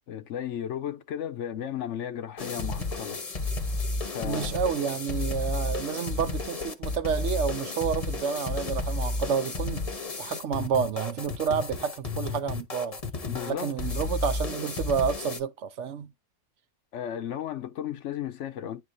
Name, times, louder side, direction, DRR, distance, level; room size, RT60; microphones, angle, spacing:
voice 1, 0.1-3.2 4.1-4.5 13.3-13.7 14.0-14.1 16.9-18.8, left 10 dB, 65° left, 0.9 m, -34 dB
sound 1, 2.4-15.4, left 3 dB, 30° left, 0.9 m, -32 dB
voice 2, 4.2-9.8 10.2-13.0 13.5-16.1, right 7 dB, 65° right, 0.9 m, -29 dB
10.5 x 3.7 x 2.6 m
omnidirectional pair, 1.4 m